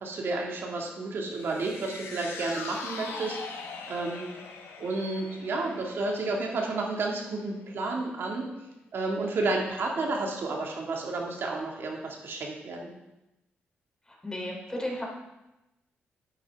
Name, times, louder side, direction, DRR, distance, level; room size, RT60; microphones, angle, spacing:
voice 1, 0.0-4.3 4.8-8.5 8.9-12.9, right 3 dB, 65° right, 0 dB, 2.1 m, -31 dB
sound 1, 1.4-7.8 8.2-8.3, left 4 dB, 90° left, 1.2 m, -42 dB
voice 2, 14.2-15.0, left 1 dB, 15° left, -2 dB, 3.3 m, -33 dB
9.6 x 8.9 x 3.6 m, 0.95 s
cardioid pair, 75°, 4 cm